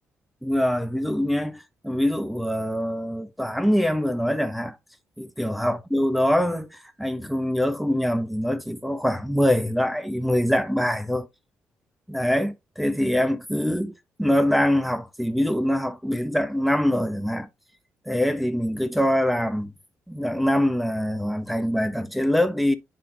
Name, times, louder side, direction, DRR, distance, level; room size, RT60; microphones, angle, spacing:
voice 1, 0.4-4.8 5.2-11.3 12.1-17.5 18.1-19.7 20.1-22.8, equal, ahead, 1.0 m, -24 dB
10.5 x 3.7 x 2.7 m
cardioid pair, 75°, 5 cm